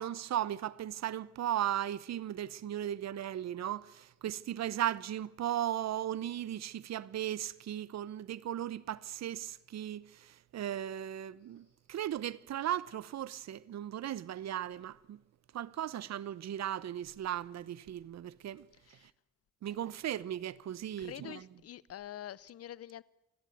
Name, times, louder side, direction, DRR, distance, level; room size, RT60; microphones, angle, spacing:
voice 1, 0.0-15.2 15.5-19.0 19.6-21.4, right 11 dB, 60° right, 0.9 m, -37 dB
voice 2, 21.0-23.0, left 11 dB, 50° left, 0.8 m, -46 dB
28.5 x 11.0 x 9.1 m
cardioid pair, 90°, 30 cm